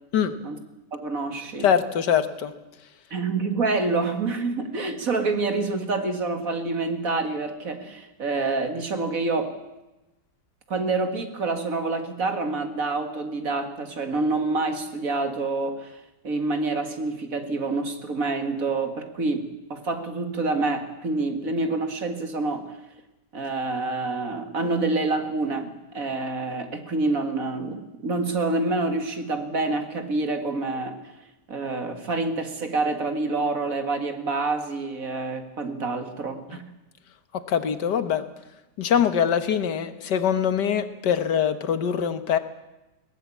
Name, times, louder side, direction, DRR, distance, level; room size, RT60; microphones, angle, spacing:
voice 1, 0.9-1.7 3.1-9.6 10.7-15.9 16.2-22.7 23.3-31.0 31.5-36.6, right 3 dB, 50° right, 7 dB, 2.3 m, -27 dB
voice 2, 1.6-2.5 37.3-38.2 38.8-42.4, left 8 dB, 75° left, 11 dB, 1.9 m, -23 dB
21.0 x 18.0 x 8.5 m, 1.0 s
omnidirectional pair, 1.8 m